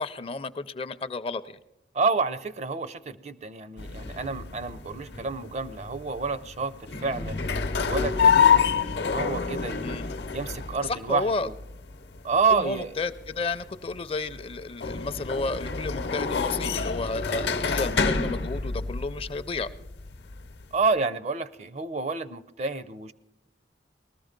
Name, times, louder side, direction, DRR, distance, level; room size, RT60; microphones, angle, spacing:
voice 1, 0.0-1.6 9.8-10.0 10.9-11.5 12.5-19.7, left 3 dB, 30° left, 13 dB, 0.4 m, -32 dB
voice 2, 1.9-7.4 7.8-10.0 10.3-11.5 12.2-13.0 20.7-23.1, right 4 dB, 40° right, 14 dB, 0.5 m, -29 dB
sound 1, 3.8-20.8, left 6 dB, 70° left, 0.8 m, -28 dB
19.5 x 13.5 x 5.2 m, 0.88 s
head